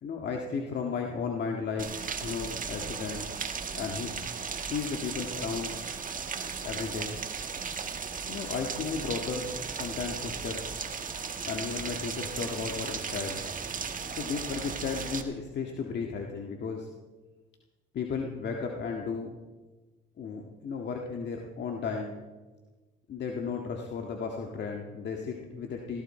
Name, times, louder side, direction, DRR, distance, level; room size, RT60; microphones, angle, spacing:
voice 1, 0.0-3.2 3.7-4.3 4.6-5.8 6.6-7.2 8.3-10.6 11.4-13.4 13.8-16.9 17.9-19.3 20.2-22.3 23.1-26.0, left 5 dB, 60° left, 2 dB, 1.8 m, -34 dB
Rain, 1.8-15.2, right 5 dB, 40° right, 1.5 m, -36 dB
17.5 x 16.0 x 4.4 m, 1.2 s
cardioid pair, 90°, 20 cm